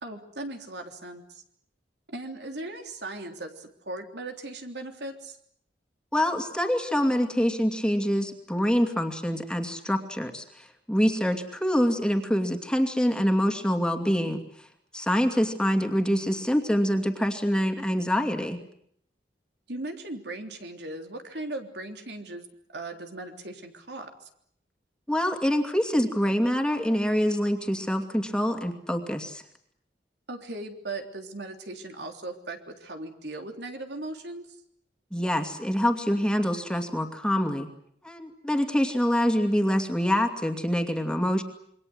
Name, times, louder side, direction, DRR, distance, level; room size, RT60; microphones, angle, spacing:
voice 1, 0.0-1.4 2.1-5.4 19.7-24.1 30.3-34.5, right 2 dB, 75° right, 5 dB, 3.4 m, -38 dB
voice 2, 6.1-14.4 14.9-18.6 25.1-29.4 35.1-37.7 38.0-41.4, equal, 5° left, 4 dB, 2.6 m, -25 dB
27.5 x 24.0 x 7.9 m, 0.68 s
head